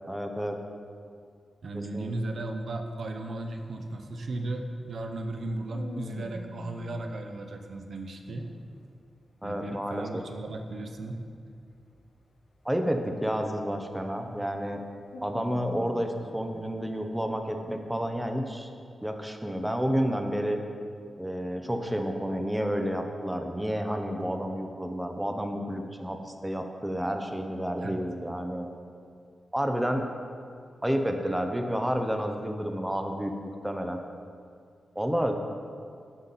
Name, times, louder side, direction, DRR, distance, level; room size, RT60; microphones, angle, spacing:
voice 1, 0.1-0.6 1.7-2.1 9.4-10.2 12.6-14.8 15.2-18.7 19.0-20.6 21.2-28.7 29.5-30.0 30.8-34.0 35.0-35.4, equal, 5° right, 4 dB, 0.7 m, -30 dB
voice 2, 1.6-8.5 9.4-11.2 27.8-28.0, right 2 dB, 65° right, 4 dB, 0.8 m, -35 dB
sound 1, 3.6-6.9 8.0-9.0 9.3-14.4 14.8-17.9, left 2 dB, 80° left, 1.2 m, -47 dB
12.0 x 5.7 x 4.1 m, 2.3 s
wide cardioid pair, 110°, 0 cm